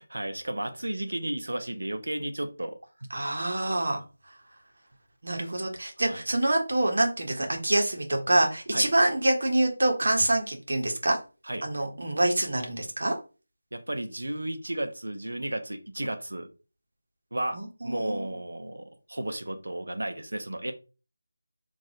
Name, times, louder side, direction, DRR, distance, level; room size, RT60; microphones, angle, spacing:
voice 1, 0.0-3.1 6.1-6.3 8.7-8.9 11.5-11.6 13.7-16.5 17.3-17.6 17.8-20.7, right 1 dB, 80° right, 8 dB, 0.4 m, -33 dB
voice 2, 3.1-4.0 5.2-11.2 11.6-13.1 17.5-18.4, right 1 dB, 65° right, 2 dB, 0.8 m, -26 dB
2.6 x 2.3 x 2.7 m, 0.33 s
figure-of-eight pair, 165°, 0 cm